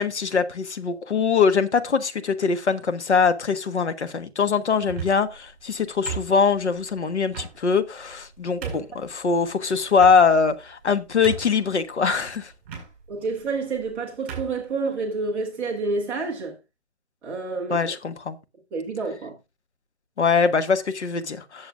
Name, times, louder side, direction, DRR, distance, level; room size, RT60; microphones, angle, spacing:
voice 1, 0.0-12.5 17.7-18.4 20.2-21.7, left 5 dB, 75° left, 1.4 m, -22 dB
sound 1, 4.8-5.3 6.1-6.7 7.3-7.5 8.1-8.2 8.6-9.0 9.9-10.5 10.9-11.0 11.2-11.7 12.6-12.9 13.7-13.9 14.3-14.6, right 6 dB, 30° right, 4.7 m, -34 dB
voice 2, 13.1-16.6 17.2-17.9 18.7-19.4, right 3 dB, 5° right, 0.7 m, -29 dB
17.5 x 7.2 x 2.4 m
hypercardioid pair, 155°, 34 cm